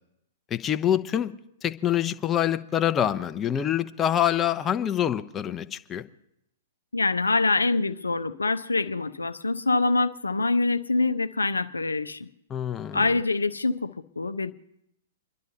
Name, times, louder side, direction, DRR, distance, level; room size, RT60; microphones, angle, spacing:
voice 1, 0.5-1.3 1.6-6.0 12.5-13.0, left 10 dB, 20° left, 0.7 m, -25 dB
voice 2, 6.9-12.3 12.9-14.5, left 3 dB, 90° left, 0.7 m, -25 dB
30.0 x 11.5 x 2.8 m
figure-of-eight pair, 115°, 0 cm